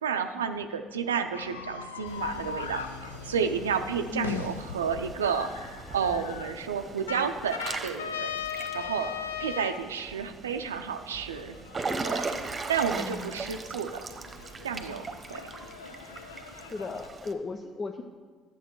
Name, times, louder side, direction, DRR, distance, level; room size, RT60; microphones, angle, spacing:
voice 1, 0.0-8.3 8.6-9.1 9.4-11.5 12.0-12.3 12.7-13.9 14.6-15.4, right 6 dB, 85° right, 8 dB, 0.5 m, -31 dB
sound 1, 1.3-6.5 7.1-9.8 11.3-17.1, left 7 dB, 85° left, 0.4 m, -39 dB
Water / Splash splatter / Drip, 2.1-17.3, right 4 dB, 30° right, 1.0 m, -40 dB
voice 2, 4.1-4.5 12.9-13.5 16.7-18.0, left 3 dB, 40° left, 4 dB, 0.6 m, -35 dB
11.0 x 7.2 x 4.6 m, 1.5 s
hypercardioid pair, 55°, 0 cm